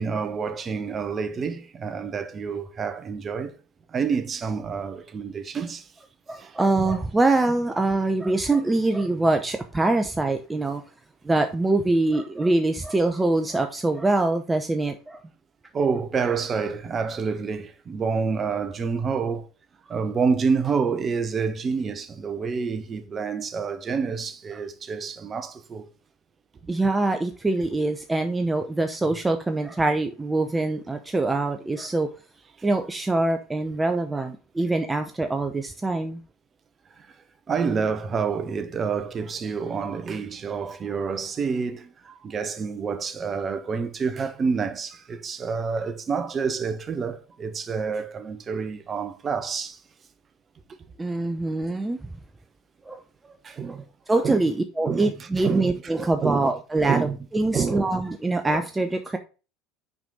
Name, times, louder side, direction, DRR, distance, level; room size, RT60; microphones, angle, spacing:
voice 1, 0.0-3.5 3.9-5.9 6.4-6.9 15.7-19.5 19.9-25.9 37.5-49.8 50.7-50.8 53.4-53.8 54.2-54.4 54.8-55.1 55.4-55.7 56.2-56.5 56.9-57.2 57.5-57.9, right 5 dB, 30° right, 1.0 m, -28 dB
voice 2, 6.3-10.8 11.2-15.2 26.7-32.1 32.6-36.2 51.0-52.1 52.9-53.3 53.7-53.8 54.1-59.2, right 2 dB, 15° right, 0.8 m, -24 dB
6.1 x 5.2 x 3.9 m
hypercardioid pair, 75°, 0 cm